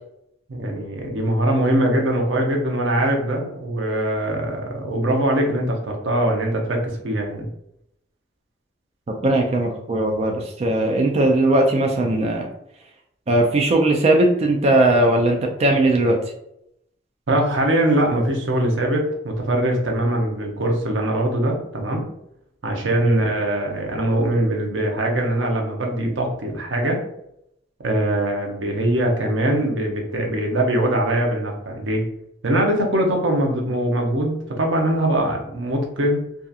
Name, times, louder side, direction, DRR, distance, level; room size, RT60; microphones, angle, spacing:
voice 1, 0.5-7.5 17.3-22.0 22.6-27.0 27.8-32.0 32.4-36.2, right 1 dB, 85° right, 1 dB, 0.6 m, -22 dB
voice 2, 9.2-12.5 13.3-16.2 23.0-23.2, right 1 dB, 35° right, 1 dB, 0.3 m, -18 dB
2.7 x 2.3 x 2.3 m, 0.77 s
head